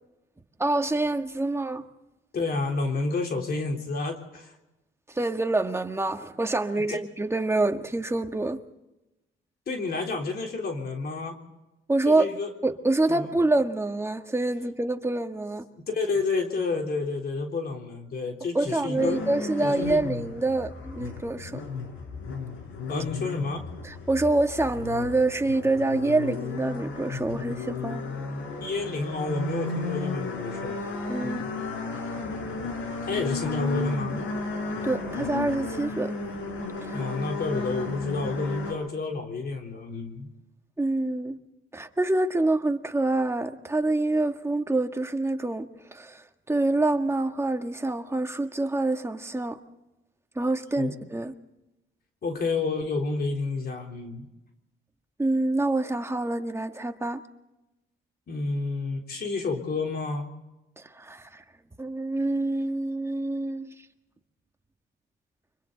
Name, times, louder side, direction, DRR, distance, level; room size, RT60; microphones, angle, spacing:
voice 1, 0.6-1.8 5.1-8.6 11.9-12.3 12.6-15.7 18.5-21.6 23.8-28.0 31.1-31.4 34.8-36.1 36.8-37.0 40.8-41.4 41.7-49.6 50.3-51.3 55.2-57.2 60.8-61.4 61.8-63.7, right 2 dB, 15° right, 1.7 m, -26 dB
voice 2, 2.3-4.5 6.7-7.0 9.7-11.4 12.1-12.5 13.1-13.3 15.9-19.2 19.6-20.0 22.9-23.6 28.6-30.8 31.2-31.5 33.0-34.2 36.9-40.3 50.8-50.9 52.2-54.3 58.3-60.3, left 3 dB, 50° left, 3.7 m, -30 dB
sound 1, 19.0-38.7, left 3 dB, 80° left, 6.0 m, -34 dB
30.0 x 25.0 x 4.0 m
cardioid pair, 90°, 20 cm